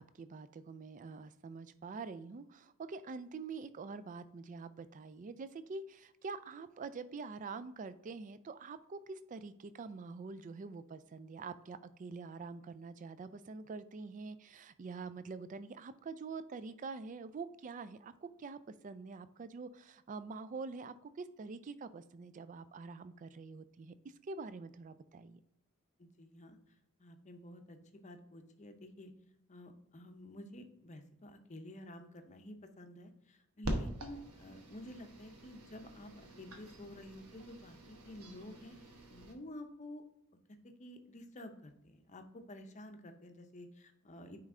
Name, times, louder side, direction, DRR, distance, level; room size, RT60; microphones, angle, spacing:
voice 1, 0.0-25.4, right 4 dB, 35° right, 13 dB, 0.3 m, -46 dB
voice 2, 26.0-26.6 27.0-29.1 29.5-40.0 40.6-44.4, left 1 dB, 30° left, 7 dB, 0.6 m, -51 dB
sound 1, 33.6-39.3, right 1 dB, 90° right, 1.1 m, -44 dB
9.4 x 3.2 x 3.7 m, 0.86 s
head